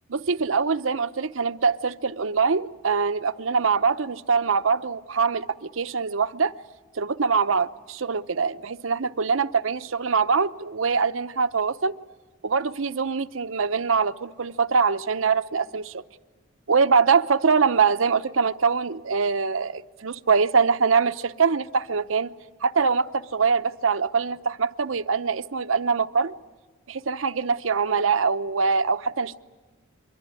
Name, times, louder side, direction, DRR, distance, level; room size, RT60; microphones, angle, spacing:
voice 1, 0.1-6.5 7.0-11.9 12.4-16.0 16.7-22.3 22.6-26.3 26.9-29.4, right 5 dB, 80° right, 0.8 m, -23 dB
25.0 x 22.5 x 9.8 m
head